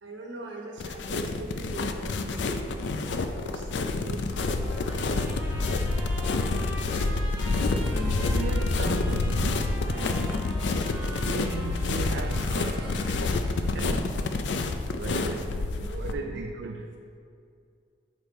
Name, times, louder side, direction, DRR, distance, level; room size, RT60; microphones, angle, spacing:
voice 1, 0.0-3.0 3.4-5.6 14.9-16.6, right 2 dB, 90° right, 0 dB, 1.1 m, -41 dB
sound 1, 0.8-16.1, left 3 dB, 75° left, 0.4 m, -28 dB
Trumpet, 4.3-13.2, equal, 10° right, 1.2 m, -43 dB
sound 2, 7.9-8.1 9.5-13.9, right 2 dB, 25° right, 0.6 m, -46 dB
voice 2, 8.3-10.5 11.2-13.3 13.7-14.3 15.0-15.4 16.0-17.0, right 4 dB, 75° right, 4 dB, 0.3 m, -38 dB
6.2 x 5.0 x 4.2 m, 2.4 s
head